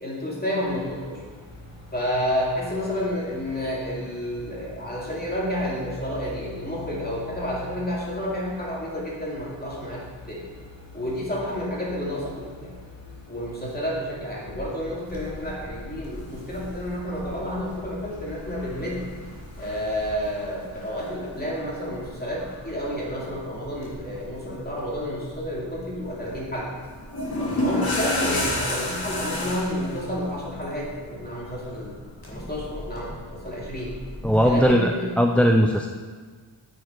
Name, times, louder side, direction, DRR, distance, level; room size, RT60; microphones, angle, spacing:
voice 1, 0.0-1.2 1.9-10.4 10.9-12.7 13.3-19.1 19.6-26.7 27.4-32.0 32.3-33.9 34.4-35.1, equal, 20° left, -5 dB, 2.6 m, -30 dB
sound 1, 0.6-20.3, left 3 dB, 90° left, 2.1 m, -45 dB
sound 2, 15.1-34.7, left 1 dB, 55° left, 2.3 m, -34 dB
voice 2, 34.2-34.9 35.2-35.9, equal, 5° left, 3 dB, 0.3 m, -19 dB
9.2 x 6.6 x 4.6 m, 1.5 s
wide cardioid pair, 95°, 44 cm